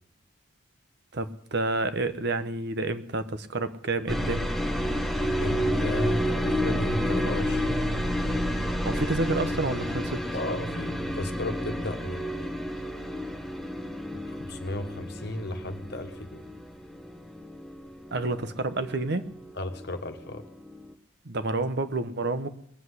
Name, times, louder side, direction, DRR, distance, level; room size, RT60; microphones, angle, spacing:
voice 1, 1.1-4.5 8.8-10.2 18.1-19.3 21.2-22.5, right 2 dB, 55° right, 11 dB, 1.0 m, -29 dB
sound 1, 4.1-19.9 20.1-20.9, equal, ahead, 1.1 m, -30 dB
voice 2, 5.4-7.8 10.3-12.5 14.1-16.4 19.6-20.4, left 2 dB, 55° left, 6 dB, 1.5 m, -34 dB
20.5 x 7.9 x 8.1 m, 0.72 s
head